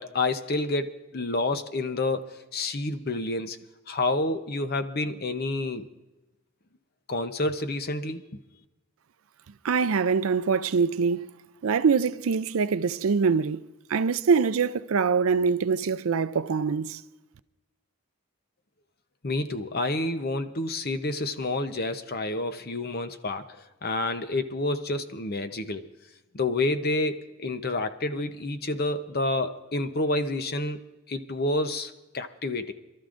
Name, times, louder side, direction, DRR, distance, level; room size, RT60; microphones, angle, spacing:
voice 1, 0.0-3.6 3.9-5.9 7.1-8.4 19.2-23.5 23.8-25.9 26.3-30.8 31.1-32.7, left 2 dB, 45° left, 0.8 m, -29 dB
voice 2, 9.6-11.3 11.6-17.0, right 5 dB, 70° right, 0.4 m, -24 dB
26.5 x 13.0 x 2.6 m
head